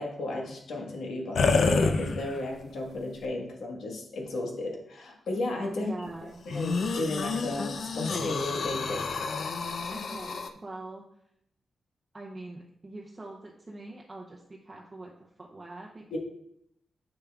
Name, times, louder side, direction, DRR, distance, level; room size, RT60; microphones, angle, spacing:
voice 1, 0.0-5.9 6.4-9.0 16.1-16.2, left 2 dB, 90° left, 0 dB, 1.4 m, -34 dB
sound 1, 1.4-2.6 3.2-3.3 6.5-10.5, left 4 dB, 55° left, 0.5 m, -28 dB
voice 2, 5.7-6.4 9.9-11.1 12.1-16.2, right 2 dB, 20° right, -2 dB, 0.6 m, -43 dB
7.8 x 6.6 x 2.4 m, 0.75 s
wide cardioid pair, 160°, 0 cm